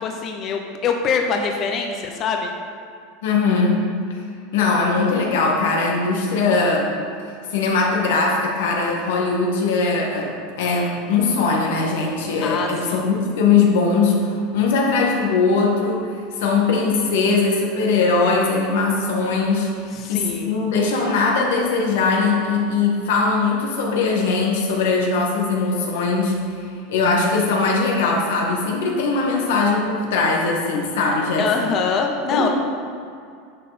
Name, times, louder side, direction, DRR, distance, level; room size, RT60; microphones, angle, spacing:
voice 1, 0.0-2.5 12.4-13.0 19.9-20.5 31.4-32.5, left 5 dB, 35° left, 3 dB, 0.8 m, -24 dB
voice 2, 3.2-3.8 4.5-6.9 7.5-16.1 16.4-19.7 20.0-26.4 26.9-31.7 32.3-32.5, left 4 dB, 80° left, -1 dB, 2.0 m, -20 dB
10.5 x 6.3 x 4.3 m, 2.3 s
supercardioid pair, 150°, 0 cm